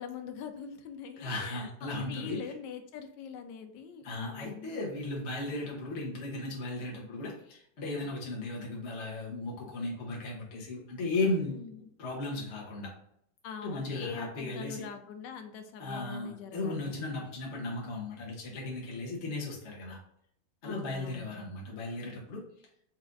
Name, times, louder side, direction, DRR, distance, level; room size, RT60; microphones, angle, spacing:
voice 1, 0.0-4.8 11.5-11.9 13.4-17.1 20.6-21.6, left 6 dB, 85° left, 7 dB, 1.2 m, -43 dB
voice 2, 1.2-2.5 4.0-11.6 12.0-12.9 13.6-14.9 15.8-20.0 20.6-22.4, left 2 dB, 50° left, -3 dB, 1.0 m, -36 dB
4.4 x 2.4 x 3.8 m, 0.73 s
omnidirectional pair, 1.9 m